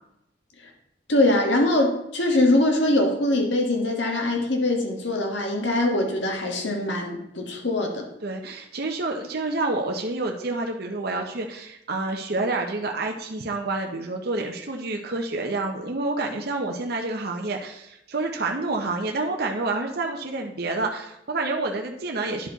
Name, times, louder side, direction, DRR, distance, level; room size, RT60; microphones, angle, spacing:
voice 1, 1.1-8.0, left 1 dB, 80° left, 2 dB, 1.6 m, -22 dB
voice 2, 8.2-22.5, right 2 dB, 60° right, 2 dB, 0.8 m, -28 dB
10.5 x 4.5 x 4.0 m, 0.83 s
head